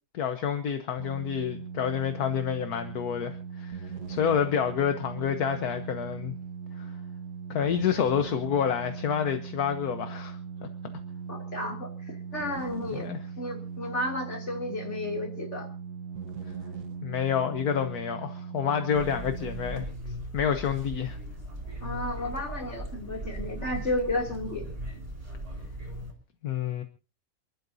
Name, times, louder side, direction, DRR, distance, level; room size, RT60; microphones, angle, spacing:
voice 1, 0.1-6.3 6.8-6.9 7.5-10.7 13.0-13.2 17.0-19.9 20.3-21.2 26.4-26.8, left 8 dB, 70° left, 1.6 m, -28 dB
sound 1, 1.0-19.9, right 6 dB, 85° right, 1.6 m, -39 dB
voice 2, 11.3-13.1 13.4-15.7 21.8-24.7, left 1 dB, 45° left, 3.1 m, -32 dB
sound 2, 18.9-26.1, right 1 dB, 35° right, 4.7 m, -38 dB
28.5 x 12.0 x 2.7 m
omnidirectional pair, 1.7 m